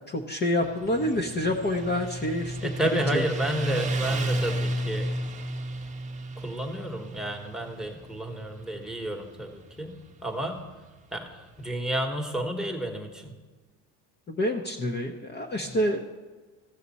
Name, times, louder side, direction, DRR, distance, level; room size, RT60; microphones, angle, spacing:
voice 1, 0.1-3.2 14.3-16.0, left 1 dB, 25° left, 2 dB, 0.8 m, -28 dB
Motorcycle, 0.6-11.7, right 1 dB, 20° right, 0.9 m, -33 dB
voice 2, 2.6-5.1 6.4-10.0 10.2-10.6 11.1-13.3 15.6-15.8, right 1 dB, ahead, 5 dB, 1.2 m, -31 dB
15.0 x 6.5 x 4.1 m, 1.3 s
cardioid pair, 120°, 40 cm